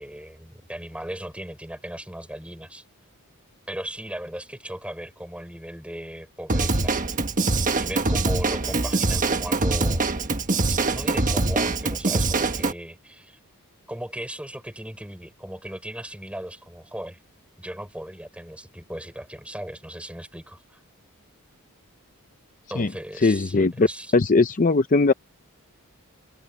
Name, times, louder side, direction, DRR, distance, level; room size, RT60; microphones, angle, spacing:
voice 1, 0.0-2.8 3.7-7.1 7.7-10.2 10.9-13.4 13.9-17.2 17.6-20.8 22.7-24.1, right 1 dB, 5° right, 6.0 m, -37 dB
Drum kit / Drum, 6.5-12.7, right 3 dB, 35° right, 1.4 m, -23 dB
voice 2, 23.2-23.9 24.1-25.1, left 3 dB, 35° left, 0.6 m, -19 dB
head